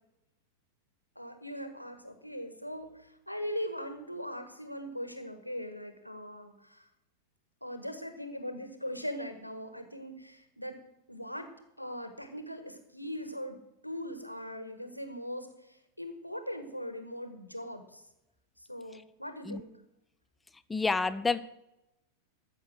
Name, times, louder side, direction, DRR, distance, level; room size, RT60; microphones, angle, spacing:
voice 1, 1.1-6.9 7.6-10.8 11.1-11.5 11.8-13.6 13.8-18.0 18.6-19.7, equal, 90° left, 8 dB, 1.5 m, -40 dB
voice 2, 20.7-21.4, left 4 dB, 10° left, 15 dB, 0.6 m, -28 dB
14.0 x 6.9 x 6.3 m, 0.89 s
figure-of-eight pair, 90°, 0 cm